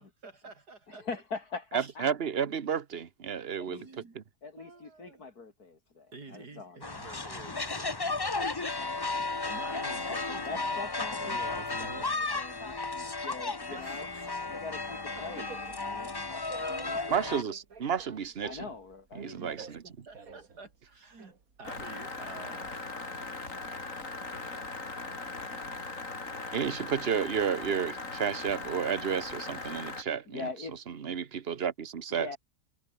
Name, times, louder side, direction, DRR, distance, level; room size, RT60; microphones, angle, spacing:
voice 1, 0.0-1.1 1.8-1.9 3.7-4.2 4.6-5.3 6.1-12.1 13.7-14.6 15.2-15.3 15.6-15.7 16.7-17.4 19.4-21.3 21.6-22.8, right 3 dB, 85° right, 4.4 m, -49 dB
voice 2, 0.9-2.1 3.6-3.8 4.4-7.0 10.4-14.1 14.5-15.5 15.9-16.2 18.4-19.4 30.3-30.8 32.1-32.4, left 4 dB, 75° left, 3.3 m, -42 dB
voice 3, 1.7-3.9 4.1-4.2 17.1-18.7 19.1-19.8 26.5-30.5 30.9-32.3, right 7 dB, 40° right, 1.3 m, -32 dB
sound 1, 6.8-17.4, left 3 dB, 20° left, 0.7 m, -34 dB
sound 2, 14.4-22.1, right 5 dB, 65° right, 2.8 m, -51 dB
sound 3, 21.6-30.0, left 3 dB, 55° left, 4.0 m, -39 dB
omnidirectional pair, 1.7 m